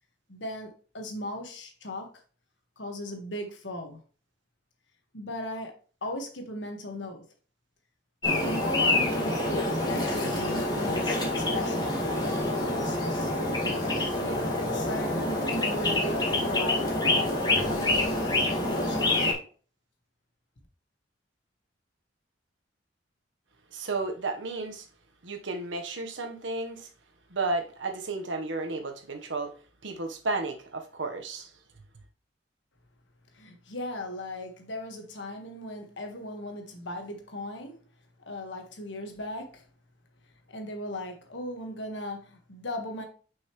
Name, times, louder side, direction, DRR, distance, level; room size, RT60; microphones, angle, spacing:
voice 1, 0.3-2.1 2.8-4.0 5.1-5.7 6.0-7.2 8.3-13.3 14.1-19.2 33.3-37.8 38.2-39.7 40.5-43.1, left 1 dB, 80° left, 1.5 m, -38 dB
sound 1, 8.2-19.3, left 2 dB, 25° left, 1.9 m, -27 dB
voice 2, 23.7-24.9 25.2-26.9 27.3-29.5 29.8-31.5, right 3 dB, 85° right, 1.2 m, -33 dB
6.4 x 5.5 x 3.1 m
head